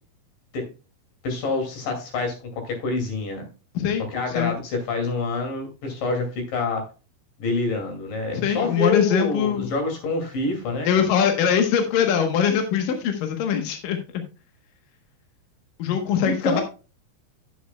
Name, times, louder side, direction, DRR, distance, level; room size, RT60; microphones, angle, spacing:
voice 1, 1.2-3.5 4.1-6.9 7.4-11.1 16.2-16.6, left 3 dB, 55° left, 4 dB, 3.7 m, -27 dB
voice 2, 8.3-9.7 10.8-14.2 15.8-16.6, left 8 dB, 70° left, 5 dB, 2.2 m, -22 dB
11.0 x 9.5 x 2.2 m, 0.33 s
omnidirectional pair, 5.3 m